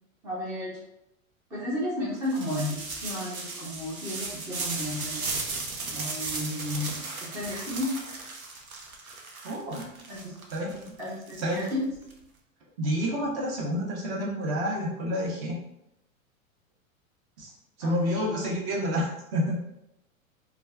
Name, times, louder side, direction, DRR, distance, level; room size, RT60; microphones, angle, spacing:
voice 1, 0.2-0.8 1.5-5.3 5.9-8.0 10.1-10.4 11.0-11.8 17.8-18.3, left 1 dB, 5° right, -8 dB, 0.3 m, -33 dB
sound 1, 2.2-12.1, right 3 dB, 90° right, 0.6 m, -36 dB
voice 2, 9.4-9.9 10.5-10.9 11.4-11.6 12.8-15.6 17.4-17.5 17.8-19.6, equal, 40° right, -2 dB, 0.9 m, -29 dB
3.0 x 2.3 x 2.3 m, 0.84 s
figure-of-eight pair, 95°, 41 cm